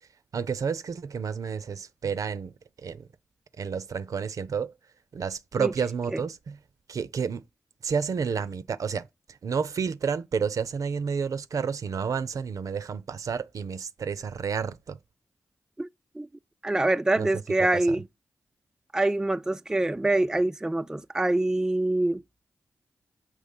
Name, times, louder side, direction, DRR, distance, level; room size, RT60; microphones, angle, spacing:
voice 1, 0.3-2.5 2.8-3.1 3.6-4.7 5.1-6.6 6.9-7.4 7.8-9.1 9.4-15.0 17.2-17.3 17.6-18.0, right 6 dB, 65° right, 0.6 m, -30 dB
voice 2, 16.6-18.0 18.9-22.2, right 2 dB, 10° right, 0.3 m, -25 dB
6.7 x 3.2 x 5.4 m
supercardioid pair, 40°, 6 cm